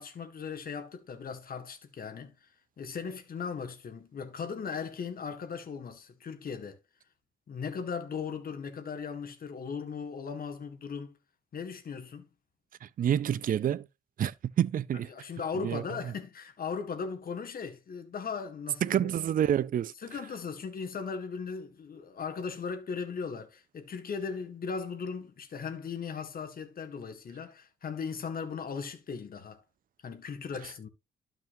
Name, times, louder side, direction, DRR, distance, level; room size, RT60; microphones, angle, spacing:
voice 1, 0.0-2.5 2.8-6.8 7.5-11.2 11.5-12.3 14.9-19.1 20.0-29.6 30.0-30.9, left 5 dB, 45° left, 1.8 m, -38 dB
voice 2, 12.8-13.8 14.2-15.1 15.6-15.8 18.8-19.9, right 10 dB, 45° right, 0.5 m, -28 dB
12.0 x 5.9 x 2.7 m
cardioid pair, 90°, 20 cm